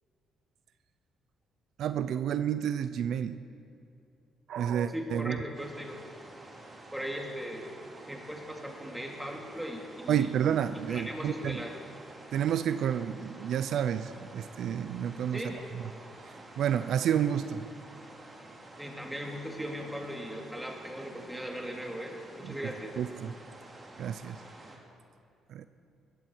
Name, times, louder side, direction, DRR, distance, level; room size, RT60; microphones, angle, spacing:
voice 1, 1.8-3.4 4.5-5.4 10.1-11.6 12.3-15.4 16.6-17.6 22.4-22.5 23.0-23.3 24.0-24.4 25.5-25.6, right 9 dB, 75° right, 12 dB, 0.5 m, -30 dB
voice 2, 4.9-6.0 6.9-7.7 8.1-10.3 10.9-11.8 15.3-15.6 18.8-22.9, equal, 5° right, 1 dB, 2.6 m, -38 dB
sound 1, 5.5-24.8, right 2 dB, 25° right, 2.8 m, -50 dB
20.0 x 14.5 x 4.6 m, 2.5 s
cardioid pair, 90°, 0 cm